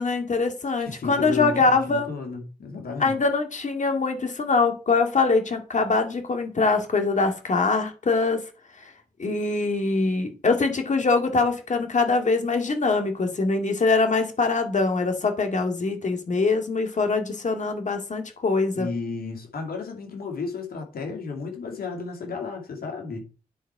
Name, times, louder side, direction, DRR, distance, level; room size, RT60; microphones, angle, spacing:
voice 1, 0.0-2.1 3.0-8.4 8.8-8.9 9.2-18.9, left 3 dB, 50° left, 2.1 m, -23 dB
voice 2, 0.8-3.2 18.7-23.2, left 4 dB, 75° left, 2.6 m, -33 dB
10.0 x 4.4 x 4.7 m
supercardioid pair, 50°, 16 cm